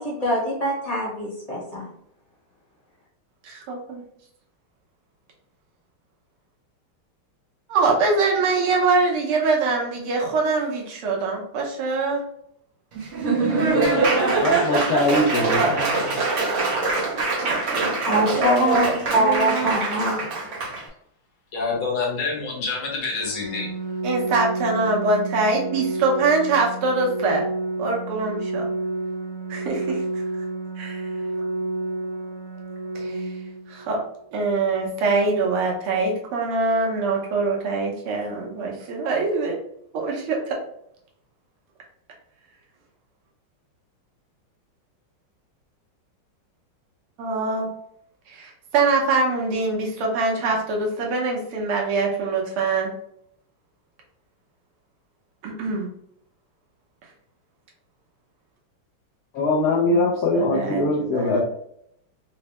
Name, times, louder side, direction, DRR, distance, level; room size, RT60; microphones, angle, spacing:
voice 1, 0.2-1.8 18.0-18.9 19.1-20.2, equal, 25° left, -6 dB, 0.8 m, -23 dB
voice 2, 3.4-4.0 7.7-12.2 15.6-16.0 17.4-19.8 24.0-27.4 27.8-28.7 29.5-30.2 30.8-31.1 32.9-33.3 33.7-34.0 34.3-39.6 39.9-40.6 47.2-47.7 48.3-52.9 55.4-55.9 59.9-60.1 60.3-61.4, right 3 dB, 90° right, -1 dB, 1.8 m, -24 dB
Laughter / Applause, 12.9-20.8, right 3 dB, 65° right, 0.7 m, -23 dB
voice 3, 14.4-16.0 59.3-61.4, left 2 dB, 90° left, -4 dB, 0.8 m, -22 dB
voice 4, 21.5-23.8, left 4 dB, 65° left, -2 dB, 1.4 m, -27 dB
Organ, 23.2-34.2, right 2 dB, 40° right, 1.0 m, -30 dB
4.4 x 2.0 x 2.9 m, 0.72 s
omnidirectional pair, 2.3 m